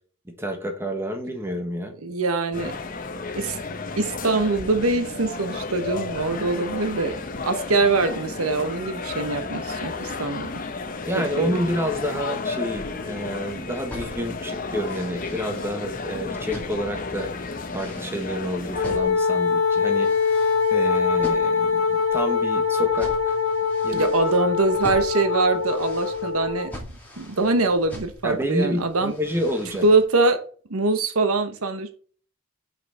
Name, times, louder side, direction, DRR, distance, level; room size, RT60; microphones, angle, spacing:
voice 1, 0.3-1.9 11.1-17.3 17.7-20.1 20.7-23.4 23.8-24.1 28.2-29.8, equal, 10° right, 4 dB, 1.3 m, -29 dB
voice 2, 2.0-2.7 3.4-3.6 4.0-7.1 7.4-10.5 11.2-11.6 23.9-26.7 27.2-29.1 29.8-30.4 30.7-31.9, right 3 dB, 90° right, 9 dB, 1.0 m, -23 dB
sound 1, 2.5-19.0, left 3 dB, 40° left, 0.9 m, -33 dB
sound 2, 13.8-30.0, left 1 dB, 10° left, 2.2 m, -43 dB
Wind instrument woodwind instrument, 18.7-26.7, left 5 dB, 90° left, 0.9 m, -23 dB
6.1 x 5.9 x 4.3 m, 0.43 s
head